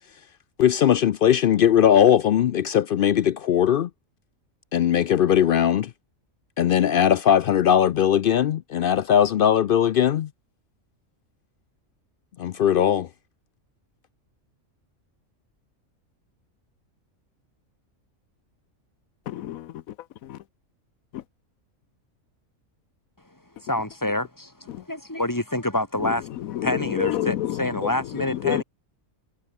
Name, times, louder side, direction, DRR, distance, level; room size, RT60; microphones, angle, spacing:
voice 1, 0.6-3.9 4.7-5.9 6.6-10.3 12.4-13.1, left 9 dB, 70° left, 0.5 m, -19 dB
voice 2, 19.3-19.8 20.2-20.4 21.1-21.2 24.7-24.8 26.0-28.6, left 13 dB, 90° left, 1.1 m, -29 dB
voice 3, 23.6-26.3 26.6-28.6, left 1 dB, 15° left, 3.6 m, -27 dB
omnidirectional pair, 1.4 m